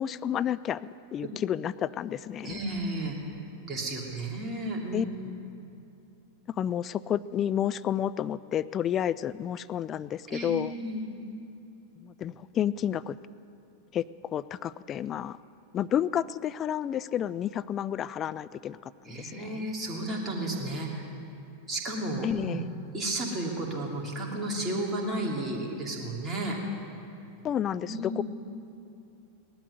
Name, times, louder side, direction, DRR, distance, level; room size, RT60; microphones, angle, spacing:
voice 1, 0.0-2.6 4.9-5.1 6.5-10.7 12.0-13.2 13.9-15.4 15.7-19.7 22.2-22.7 27.4-28.2, left 10 dB, 30° left, 15 dB, 0.3 m, -31 dB
voice 2, 2.4-3.2 3.7-5.0 10.3-11.0 19.0-21.1 21.7-22.6 22.9-26.6 27.8-28.2, right 1 dB, 20° right, -2 dB, 2.8 m, -33 dB
18.0 x 12.0 x 6.7 m, 2.6 s
figure-of-eight pair, 90°, 0 cm